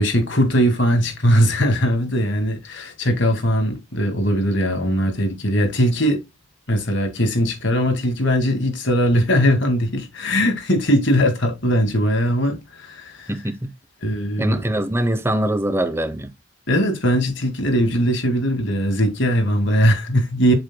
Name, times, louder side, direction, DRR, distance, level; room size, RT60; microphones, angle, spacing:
voice 1, 0.0-6.2 6.7-13.3 14.0-14.6 16.7-20.5, equal, 65° left, 2.1 m, -20 dB
voice 2, 13.3-13.7 14.4-16.3, right 1 dB, 10° right, 0.8 m, -23 dB
7.7 x 6.6 x 2.2 m
head